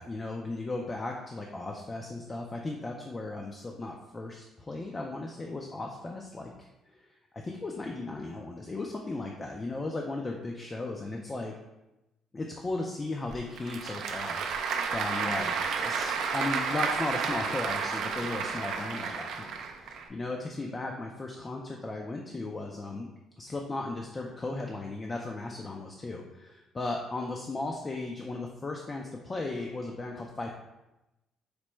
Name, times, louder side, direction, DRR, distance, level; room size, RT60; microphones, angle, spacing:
voice 1, 0.0-7.1 7.3-11.5 12.3-15.5 15.8-23.1 23.4-30.5, left 2 dB, 25° left, 1 dB, 0.3 m, -36 dB
Applause / Crowd, 13.3-20.0, right 5 dB, 70° right, 0.3 m, -31 dB
4.4 x 2.0 x 3.0 m, 0.98 s
cardioid pair, 120°, 0 cm